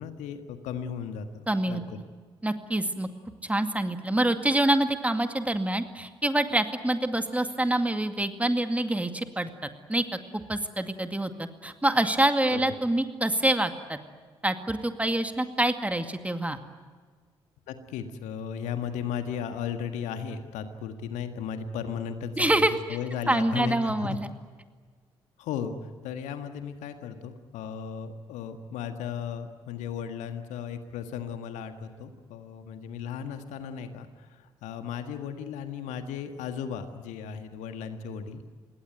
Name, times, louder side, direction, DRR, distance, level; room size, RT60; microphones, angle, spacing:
voice 1, 0.0-2.0 12.5-12.6 17.7-22.6 22.9-24.2 25.4-38.4, left 7 dB, 65° left, 8 dB, 1.7 m, -36 dB
voice 2, 1.5-1.8 2.4-3.1 3.4-10.2 10.5-14.0 14.4-16.6 22.4-22.7 23.3-24.3, right 1 dB, 10° right, 8 dB, 2.2 m, -26 dB
27.0 x 21.0 x 9.3 m, 1.5 s
figure-of-eight pair, 40°, 13 cm